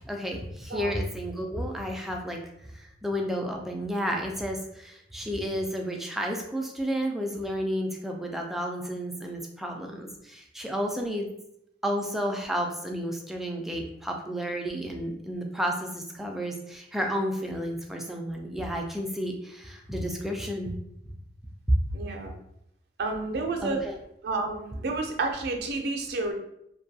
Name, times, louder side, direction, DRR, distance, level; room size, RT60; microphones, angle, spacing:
voice 1, 0.1-11.3 11.8-20.7 21.7-21.8 23.6-24.0, equal, ahead, 1 dB, 0.3 m, -31 dB
voice 2, 21.9-22.3 23.0-23.8 24.2-26.3, right 3 dB, 65° right, 3 dB, 0.5 m, -30 dB
2.6 x 2.3 x 2.6 m, 0.76 s
head